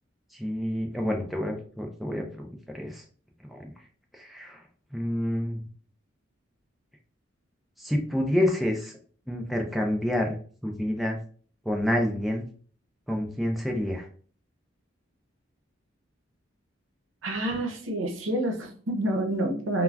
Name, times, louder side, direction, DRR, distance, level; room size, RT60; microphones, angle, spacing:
voice 1, 0.3-3.0 3.4-3.7 4.1-4.6 4.9-5.6 7.8-8.9 9.3-10.4 10.6-11.2 11.7-12.5 13.1-14.1, left 1 dB, ahead, 1 dB, 0.4 m, -28 dB
voice 2, 17.2-19.8, right 1 dB, 90° right, 2 dB, 0.8 m, -28 dB
2.4 x 2.2 x 3.3 m, 0.44 s
head